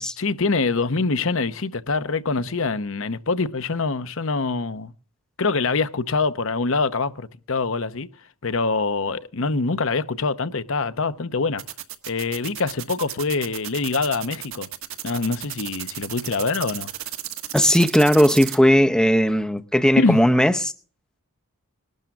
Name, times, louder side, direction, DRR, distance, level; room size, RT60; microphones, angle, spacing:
voice 1, 0.2-4.9 5.4-8.1 8.4-11.6 12.1-14.7 15.0-16.9 19.9-20.2, left 3 dB, 60° left, 0.8 m, -24 dB
sound 1, 11.6-18.6, right 12 dB, 70° right, 1.4 m, -33 dB
voice 2, 17.5-20.7, equal, 5° left, 0.7 m, -17 dB
20.0 x 12.0 x 3.6 m
head